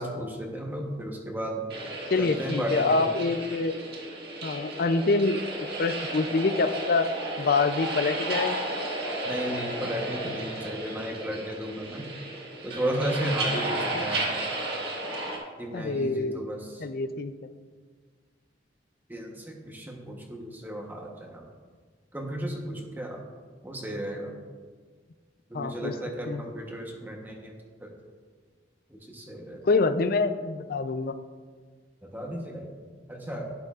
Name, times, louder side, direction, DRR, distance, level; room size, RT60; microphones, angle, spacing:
voice 1, 0.0-1.7 2.2-3.0 9.2-12.1 12.6-14.2 15.6-16.8 19.1-21.4 22.1-23.2 23.6-24.4 25.5-27.5 27.8-27.9 28.9-29.6 32.1-32.7 33.1-33.5, right 1 dB, 10° right, -1 dB, 1.0 m, -34 dB
sound 1, 1.7-15.4, right 2 dB, 60° right, 1.7 m, -33 dB
voice 2, 2.1-3.7 4.4-7.1 7.4-8.6 13.5-14.1 15.7-16.4 16.8-17.3 25.5-25.9 26.3-26.4 29.6-31.1, left 3 dB, 55° left, 11 dB, 0.5 m, -26 dB
11.5 x 9.1 x 2.4 m, 1.6 s
head